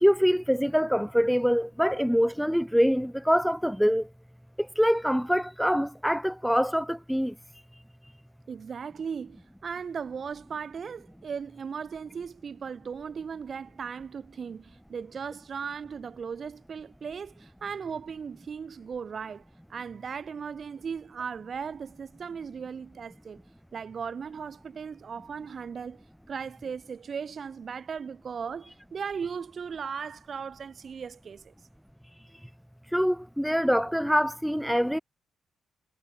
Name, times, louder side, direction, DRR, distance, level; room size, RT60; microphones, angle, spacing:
voice 1, 0.0-4.1 4.8-7.3 32.9-35.0, equal, ahead, 1.1 m, -24 dB
voice 2, 8.5-19.4 19.7-23.4 23.7-31.5, right 6 dB, 55° right, 4.5 m, -37 dB
cardioid pair, 65°, 0 cm